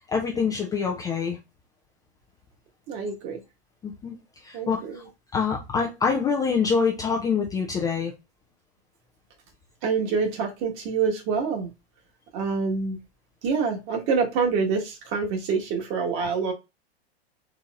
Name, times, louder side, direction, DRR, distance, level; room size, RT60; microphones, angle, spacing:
voice 1, 0.1-1.4 3.8-4.2 4.4-5.0 5.3-8.1 16.2-16.3, left 5 dB, 10° left, 0.4 m, -25 dB
voice 2, 2.9-3.4 4.5-5.0 9.8-11.7 12.3-13.0 13.4-16.5, right 5 dB, 40° right, 1.4 m, -26 dB
4.1 x 3.7 x 2.4 m
figure-of-eight pair, 100°, 32 cm